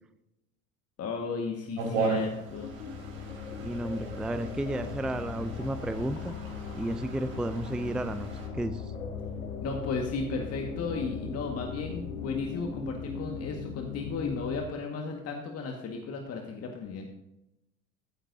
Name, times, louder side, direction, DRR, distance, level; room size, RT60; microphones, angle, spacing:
voice 1, 1.0-2.7 9.6-17.1, left 4 dB, 35° left, 2 dB, 1.8 m, -34 dB
sound 1, 1.8-8.5, right 4 dB, 65° right, 4.0 m, -37 dB
sound 2, 2.3-14.7, left 5 dB, 85° left, 1.4 m, -38 dB
voice 2, 3.6-6.3 6.7-8.3 8.5-8.9, right 1 dB, ahead, 11 dB, 0.5 m, -32 dB
15.5 x 9.8 x 2.8 m, 0.87 s
hypercardioid pair, 75°, 40 cm